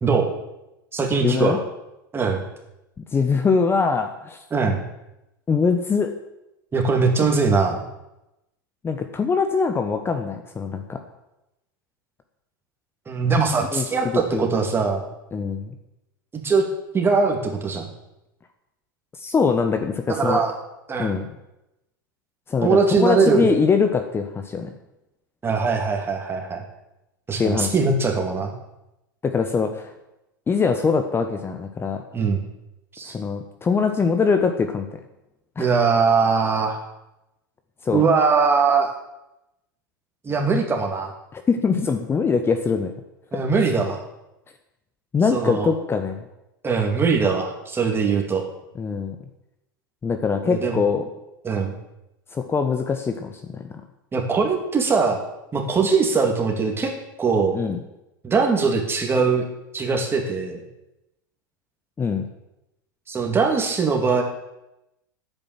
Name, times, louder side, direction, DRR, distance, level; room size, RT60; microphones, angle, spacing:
voice 1, 0.0-0.3 0.9-1.6 2.1-2.4 4.5-4.8 6.7-7.8 13.1-15.1 16.4-16.6 16.9-17.9 20.1-20.5 20.9-21.1 22.6-23.5 25.4-26.6 27.3-28.5 32.1-32.4 32.9-33.1 35.6-36.8 37.9-38.9 40.2-41.1 43.3-44.0 45.3-45.7 46.6-48.4 50.4-50.8 51.4-51.7 54.1-55.2 55.5-56.9 57.2-57.5 58.2-59.5 59.7-60.6 63.1-64.2, right 4 dB, 20° right, 2 dB, 3.1 m, -21 dB
voice 2, 1.2-1.6 3.0-4.4 5.5-6.1 8.8-11.0 13.7-13.8 14.3-14.5 15.3-15.7 19.1-20.4 21.0-21.3 22.5-24.7 27.4-27.7 29.2-29.9 30.5-32.0 33.1-34.9 35.6-35.7 37.8-38.0 41.3-42.9 43.3-43.4 45.1-46.2 48.7-49.2 50.0-51.1 52.3-53.7 57.5-57.8 62.0-62.3, left 5 dB, 20° left, 7 dB, 1.2 m, -22 dB
10.5 x 9.2 x 7.6 m, 0.91 s
hypercardioid pair, 90°, 11 cm